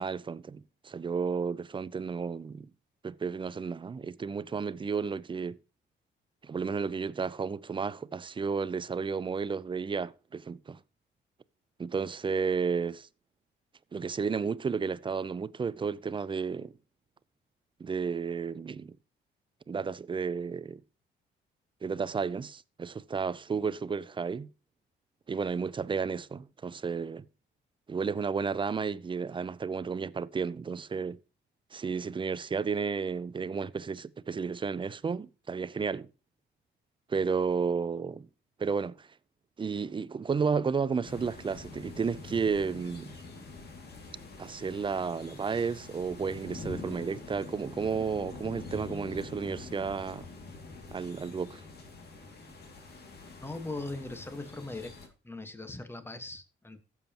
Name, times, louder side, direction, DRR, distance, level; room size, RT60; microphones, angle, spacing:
voice 1, 0.0-2.7 3.0-5.6 6.4-10.8 11.8-13.1 13.9-16.8 17.8-19.0 19.7-20.8 21.8-24.5 25.3-27.3 27.9-31.2 31.7-36.1 37.1-38.3 38.6-39.1 39.6-43.2 44.4-50.3 50.9-51.6, right 5 dB, 25° right, 0.4 m, -32 dB
sound 1, 41.0-55.1, left 3 dB, 55° left, 2.2 m, -45 dB
voice 2, 53.4-54.9 55.2-56.8, left 2 dB, 10° left, 1.3 m, -40 dB
16.0 x 7.2 x 2.9 m
cardioid pair, 90°, 20 cm